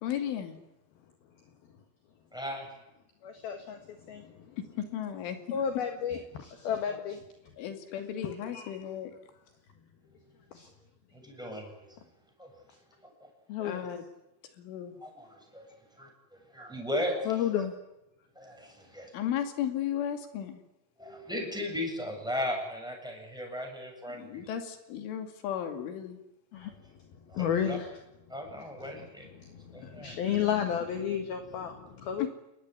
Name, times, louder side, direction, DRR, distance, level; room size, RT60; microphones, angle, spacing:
voice 1, 0.0-0.6 4.6-5.4 7.6-9.1 13.6-14.0 14.6-14.9 19.1-20.6 24.1-26.2 32.2-32.3, left 10 dB, 75° left, 6 dB, 4.9 m, -35 dB
voice 2, 2.3-2.7 11.1-11.9 12.4-12.5 13.6-13.9 15.0-15.6 16.0-17.6 18.4-19.1 21.0-24.4 27.3-27.8 28.3-29.3 29.7-30.2, left 1 dB, ahead, 1 dB, 7.0 m, -37 dB
voice 3, 3.2-4.5 5.5-7.2 7.6-7.7 8.2-8.7 10.5-10.7 13.5-13.8 17.3-17.8 26.5-26.7 27.3-27.9 28.9-29.1 29.3-32.3, left 8 dB, 60° left, 6 dB, 3.0 m, -32 dB
29.0 x 20.0 x 9.9 m, 0.92 s
omnidirectional pair, 5.7 m